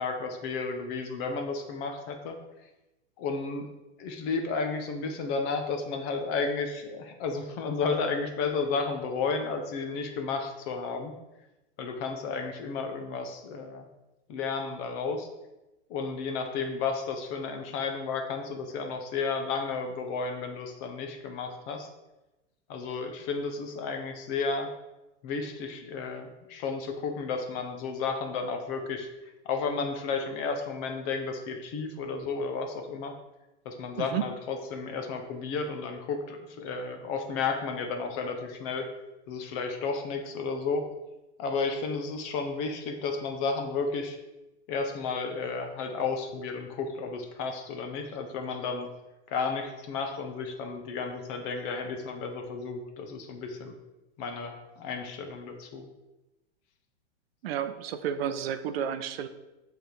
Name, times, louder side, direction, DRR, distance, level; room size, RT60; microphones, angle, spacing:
voice 1, 0.0-2.4 3.2-3.7 4.0-11.2 11.8-13.9 14.3-15.3 15.9-21.9 22.7-24.7 25.2-29.1 29.4-33.1 33.6-38.9 39.3-40.9 41.4-44.2 44.7-48.9 49.3-53.7 54.2-55.9, left 4 dB, 20° left, 5 dB, 0.5 m, -32 dB
voice 2, 57.4-59.3, right 9 dB, 60° right, 11 dB, 0.6 m, -31 dB
7.8 x 3.5 x 4.4 m, 1.0 s
supercardioid pair, 165°, 35 cm